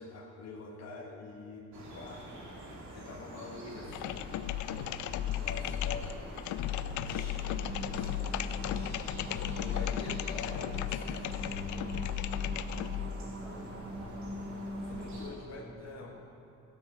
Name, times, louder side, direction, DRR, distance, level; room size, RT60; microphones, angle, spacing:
voice 1, 0.0-4.3 5.4-6.2 6.9-12.0 14.8-16.1, left 3 dB, 55° left, -1 dB, 1.8 m, -46 dB
sound 1, 1.7-15.3, right 1 dB, 70° right, 2.8 m, -47 dB
sound 2, 3.8-13.2, left 11 dB, 75° left, 0.5 m, -35 dB
sound 3, 7.4-15.3, equal, 50° right, 2.2 m, -43 dB
voice 2, 13.1-16.1, equal, 5° left, -5 dB, 2.9 m, -52 dB
12.5 x 10.0 x 6.3 m, 2.6 s
cardioid pair, 90°, 30 cm